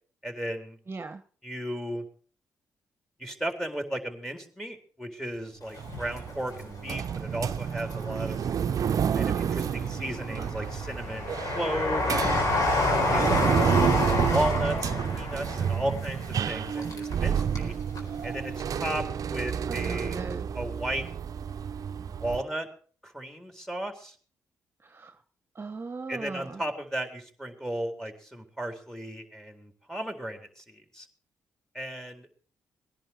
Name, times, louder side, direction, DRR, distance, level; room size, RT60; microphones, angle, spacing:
voice 1, 0.2-0.8 1.4-2.0 3.2-8.4 9.1-12.5 13.1-14.0 14.3-17.8 18.2-20.2 20.5-21.0 22.2-22.7 23.0-24.2 26.1-31.1 31.7-32.3, right 1 dB, 5° left, 5 dB, 4.0 m, -35 dB
voice 2, 0.9-1.2 19.7-20.5 24.8-25.2 25.5-26.6, right 3 dB, 35° right, 9 dB, 1.2 m, -38 dB
Train, 5.8-7.0 7.5-8.4 8.9-17.7 18.0-18.1, left 2 dB, 60° left, 4.3 m, -29 dB
Noisy Old Elevator, 5.8-22.4, right 8 dB, 60° right, 0.7 m, -30 dB
19.0 x 10.5 x 4.9 m, 0.43 s
supercardioid pair, 50°, 7 cm